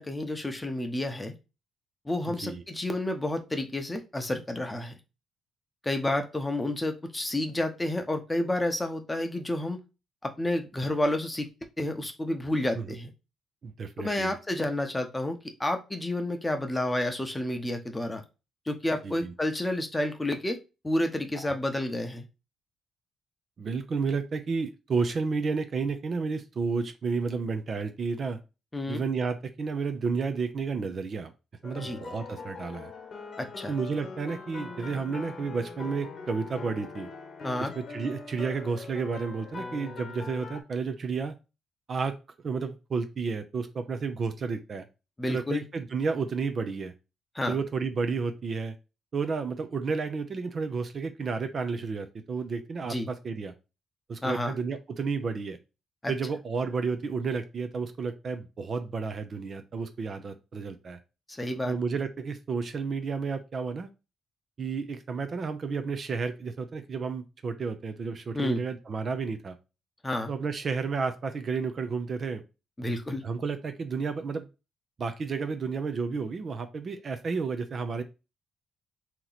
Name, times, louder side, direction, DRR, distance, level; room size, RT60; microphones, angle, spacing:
voice 1, 0.0-1.3 2.1-4.9 5.8-9.8 10.2-11.5 11.8-13.1 14.0-18.2 18.7-20.6 20.8-22.3 28.7-29.0 31.8-32.0 33.4-33.7 37.4-37.7 45.2-45.6 47.3-47.5 52.8-53.1 54.2-54.5 56.0-56.1 61.4-61.8 68.3-68.6 70.0-70.3 72.8-73.2, left 1 dB, 15° left, 6 dB, 0.8 m, -30 dB
voice 2, 13.6-14.4 19.0-19.3 21.4-21.5 23.6-28.4 28.9-31.3 31.6-32.9 33.7-37.1 37.6-41.3 41.9-42.1 42.4-44.9 45.3-46.9 47.5-48.8 49.1-53.5 54.1-55.6 56.1-61.0 61.6-63.9 64.6-69.6 70.3-72.4 73.2-74.5 75.0-78.0, right 5 dB, 45° right, 8 dB, 0.5 m, -31 dB
sound 1, 31.6-40.6, left 4 dB, 50° left, 1.1 m, -42 dB
3.0 x 2.9 x 4.0 m, 0.28 s
cardioid pair, 90°, 0 cm